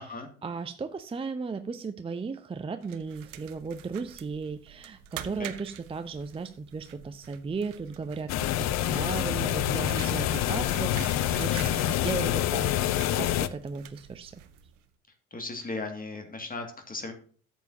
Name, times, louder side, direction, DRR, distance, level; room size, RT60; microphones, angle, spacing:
voice 1, 0.4-10.9 11.2-12.7 13.2-14.4, right 4 dB, 15° right, 9 dB, 0.7 m, -35 dB
sound 1, 2.8-14.9, right 11 dB, 65° right, 1.0 m, -46 dB
sound 2, 8.3-13.5, left 12 dB, 40° left, 0.7 m, -27 dB
voice 2, 15.3-17.1, left 3 dB, 20° left, 5 dB, 2.1 m, -37 dB
13.5 x 7.2 x 2.7 m, 0.43 s
figure-of-eight pair, 65°, 40 cm